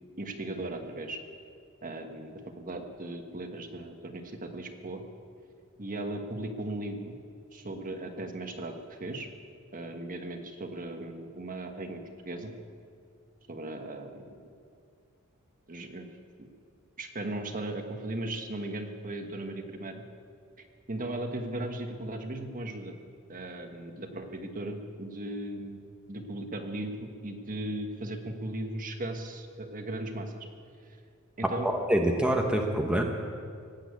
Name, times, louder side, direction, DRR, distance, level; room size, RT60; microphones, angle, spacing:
voice 1, 0.2-1.2 1.8-5.0 5.8-7.1 7.5-9.3 9.7-12.5 13.5-14.2 15.7-16.1 17.0-20.0 20.9-22.9 23.3-25.8 26.1-30.3 31.4-31.7, right 1 dB, 40° right, 5 dB, 1.4 m, -37 dB
voice 2, 31.4-33.0, right 1 dB, 5° right, 1 dB, 1.0 m, -26 dB
18.5 x 8.9 x 8.3 m, 2.3 s
head